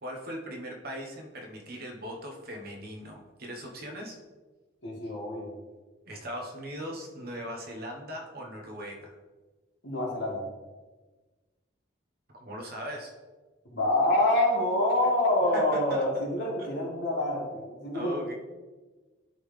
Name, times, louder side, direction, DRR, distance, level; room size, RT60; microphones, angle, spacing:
voice 1, 0.0-4.2 6.1-9.2 12.4-13.1 15.5-16.1 16.6-16.7 17.9-18.3, equal, 50° right, 1 dB, 1.1 m, -39 dB
voice 2, 4.8-5.5 9.8-10.4 13.7-18.2, left 1 dB, 65° left, -4 dB, 2.2 m, -26 dB
11.5 x 3.8 x 3.3 m, 1.3 s
head